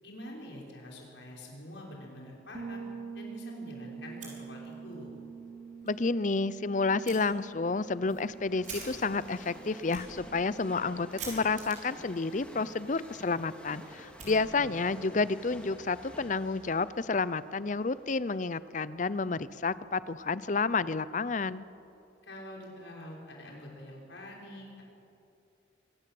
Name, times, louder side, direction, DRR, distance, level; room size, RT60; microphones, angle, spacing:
voice 1, 0.0-2.8 3.1-5.1 14.2-14.8 22.2-24.8, left 1 dB, 75° left, -2 dB, 5.7 m, -46 dB
Bass guitar, 2.5-12.2, right 5 dB, 75° right, 2.6 m, -46 dB
Fire, 4.0-5.0 5.3-5.4 5.8-5.9 7.0-7.2 7.8-14.9, right 4 dB, 40° right, 6.0 m, -48 dB
Train, 5.2-21.2 21.8-21.9, equal, 5° left, 2.8 m, -52 dB
voice 2, 5.8-21.7, left 4 dB, 40° left, 17 dB, 0.6 m, -30 dB
24.5 x 17.5 x 7.8 m, 2.6 s
head